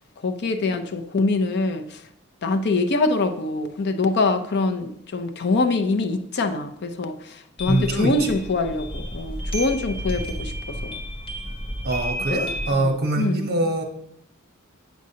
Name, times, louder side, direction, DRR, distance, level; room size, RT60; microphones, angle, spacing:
voice 1, 0.2-2.0 2.4-11.0 12.3-13.4, left 3 dB, 55° left, 8 dB, 0.6 m, -24 dB
sound 1, 7.6-12.7, equal, 25° left, 1.1 m, -31 dB
voice 2, 7.7-8.3 11.8-13.8, right 2 dB, 50° right, 4 dB, 1.0 m, -24 dB
8.1 x 6.2 x 2.8 m, 0.74 s
head